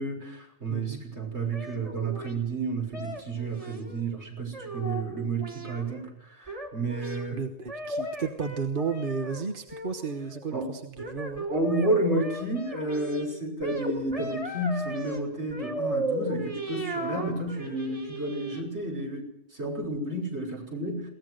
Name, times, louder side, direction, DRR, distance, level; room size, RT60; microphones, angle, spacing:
voice 1, 0.0-6.1 6.4-7.4 10.5-10.7 11.5-21.1, right 2 dB, 70° right, 2 dB, 6.7 m, -31 dB
voice 2, 0.7-1.1 7.0-11.5, right 5 dB, 50° right, 6 dB, 1.3 m, -33 dB
sound 1, 1.5-2.3 2.9-4.0 4.5-6.0 6.5-7.3 7.7-9.4 9.7-10.6 11.0-13.3 13.6-15.2 15.5-18.6, right 1 dB, 30° right, 3.6 m, -35 dB
22.0 x 18.5 x 6.5 m, 0.79 s
omnidirectional pair, 1.2 m